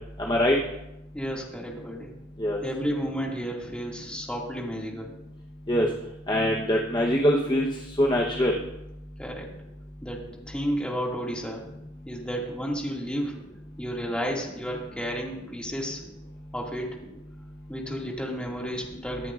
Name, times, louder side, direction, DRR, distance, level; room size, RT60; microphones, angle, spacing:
voice 1, 0.2-0.6 2.4-2.6 5.7-5.9 6.3-7.7 8.0-8.6, equal, 20° left, -1 dB, 0.9 m, -23 dB
voice 2, 1.1-2.1 2.6-5.1 9.2-9.5 10.0-11.6 12.1-13.4 13.8-16.0 16.5-17.0 17.7-19.3, equal, 5° left, -2 dB, 2.0 m, -32 dB
23.0 x 9.4 x 2.5 m, 0.90 s
head